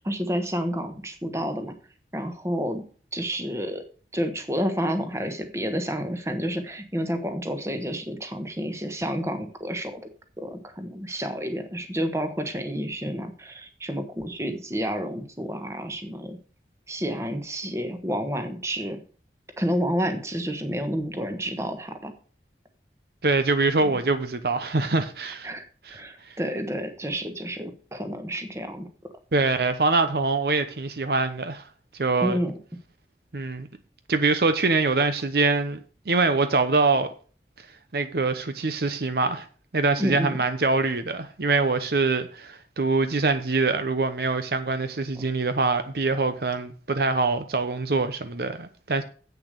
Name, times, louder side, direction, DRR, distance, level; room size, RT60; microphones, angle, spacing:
voice 1, 0.0-1.7 2.1-2.8 3.1-3.8 4.1-10.0 10.4-16.4 16.9-19.0 19.6-22.1 23.8-23.9 25.4-25.6 25.9-28.9 32.2-32.5 40.0-40.4, equal, 15° right, 1.3 m, -30 dB
voice 2, 23.2-25.5 25.9-26.0 26.3-26.4 29.3-31.6 31.9-32.4 33.3-33.7 34.1-35.8 36.1-37.1 37.9-39.5 39.7-49.0, right 3 dB, 60° right, 0.8 m, -24 dB
8.2 x 6.9 x 6.6 m
head